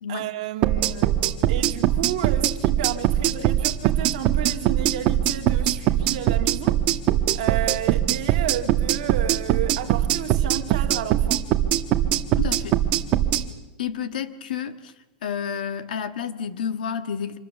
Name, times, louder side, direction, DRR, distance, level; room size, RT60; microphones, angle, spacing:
voice 1, 0.1-6.8 7.3-11.5, right 11 dB, 50° right, 2.0 m, -32 dB
sound 1, 0.6-13.4, right 12 dB, 30° right, 1.1 m, -21 dB
voice 2, 12.4-12.8 13.8-14.9 15.2-17.4, left 8 dB, 85° left, 1.6 m, -30 dB
26.5 x 22.0 x 7.0 m
supercardioid pair, 180°, 5 cm